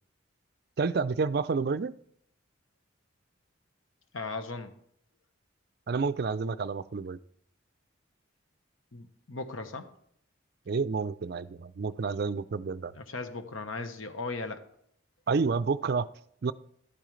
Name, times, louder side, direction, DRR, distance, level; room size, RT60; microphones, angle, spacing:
voice 1, 0.8-2.0 5.9-7.2 10.7-12.9 15.3-16.1 16.4-16.5, right 4 dB, 50° right, 14 dB, 0.4 m, -29 dB
voice 2, 4.1-4.7 8.9-9.9 12.9-14.6, left 3 dB, 90° left, 9 dB, 1.1 m, -37 dB
11.5 x 8.7 x 3.2 m, 0.69 s
head